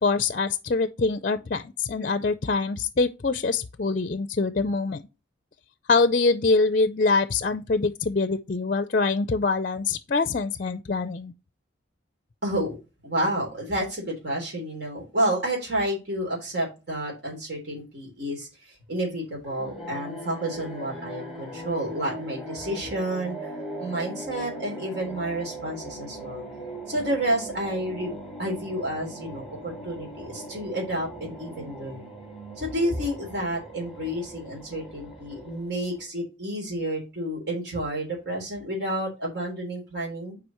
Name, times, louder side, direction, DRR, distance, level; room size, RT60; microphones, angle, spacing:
voice 1, 0.0-5.0 5.9-11.3, left 3 dB, 45° left, 0.5 m, -24 dB
voice 2, 12.4-12.8 13.0-23.4 23.8-26.4 26.9-28.1 28.4-32.1 32.6-40.4, right 1 dB, 60° right, 3.5 m, -30 dB
sound 1, 19.4-36.0, right 1 dB, ahead, 3.6 m, -40 dB
9.7 x 4.9 x 3.0 m
head